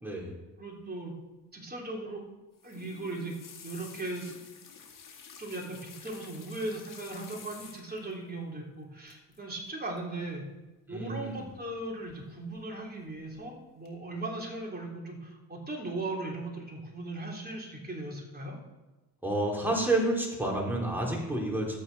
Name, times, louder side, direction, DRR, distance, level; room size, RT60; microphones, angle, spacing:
voice 1, 0.0-0.4 10.9-11.4 19.2-21.8, right 1 dB, 5° right, -2 dB, 3.8 m, -29 dB
voice 2, 0.6-1.1 1.5-2.2 2.6-3.3 3.6-4.4 5.4-10.5 10.9-18.6, right 2 dB, 20° right, -2 dB, 3.6 m, -38 dB
sound 1, 2.5-8.1 9.1-9.4 9.6-10.0 11.2-11.7 12.1-12.6 13.1-13.5 13.9-14.0, left 6 dB, 45° left, 2.2 m, -50 dB
12.5 x 8.6 x 4.2 m, 1.1 s
supercardioid pair, 70°, 43 cm